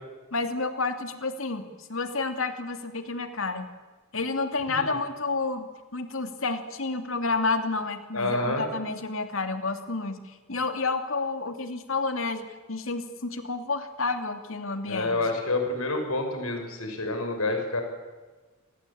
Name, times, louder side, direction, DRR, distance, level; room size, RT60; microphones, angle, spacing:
voice 1, 0.3-3.7 4.1-10.2 10.5-15.2, left 3 dB, 65° left, 7 dB, 2.7 m, -30 dB
voice 2, 8.1-8.7 14.9-17.8, left 2 dB, 90° left, 5 dB, 6.2 m, -28 dB
28.0 x 22.5 x 8.7 m, 1.3 s
head